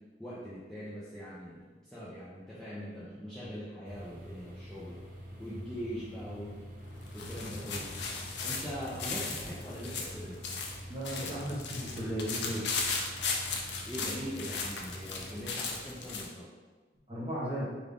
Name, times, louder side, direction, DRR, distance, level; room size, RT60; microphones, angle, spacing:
voice 1, 0.2-5.0 5.4-6.6 7.1-7.9 8.4-10.4 13.9-16.5, equal, 5° left, -11 dB, 0.5 m, -41 dB
sound 1, 3.8-15.5, equal, 45° right, 0.7 m, -47 dB
sound 2, 6.8-16.3, left 4 dB, 75° left, 0.5 m, -37 dB
voice 2, 10.9-12.7 17.1-17.7, equal, 30° right, -9 dB, 1.4 m, -35 dB
3.4 x 2.4 x 3.5 m, 1.3 s
head